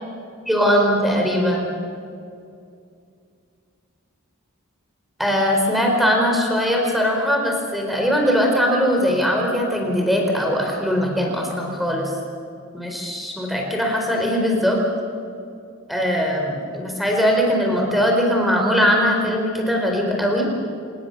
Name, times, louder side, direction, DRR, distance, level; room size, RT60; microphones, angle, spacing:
voice 1, 0.5-1.7 5.2-12.1 12.7-14.8 15.9-20.5, equal, ahead, 1 dB, 4.6 m, -20 dB
27.0 x 19.5 x 6.9 m, 2.4 s
head